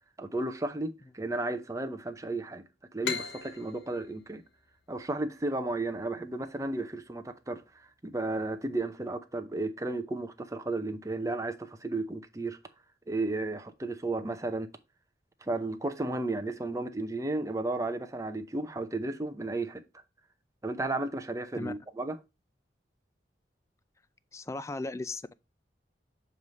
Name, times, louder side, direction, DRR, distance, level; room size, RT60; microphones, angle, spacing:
voice 1, 0.2-2.6 2.9-4.4 4.9-7.6 8.0-12.6 13.1-14.7 15.4-19.8 20.6-22.2, right 2 dB, 20° right, 0.6 m, -33 dB
sound 1, 3.0-6.4, left 5 dB, 65° left, 1.0 m, -39 dB
voice 2, 24.3-25.3, left 2 dB, 15° left, 0.3 m, -36 dB
7.1 x 3.2 x 5.1 m
head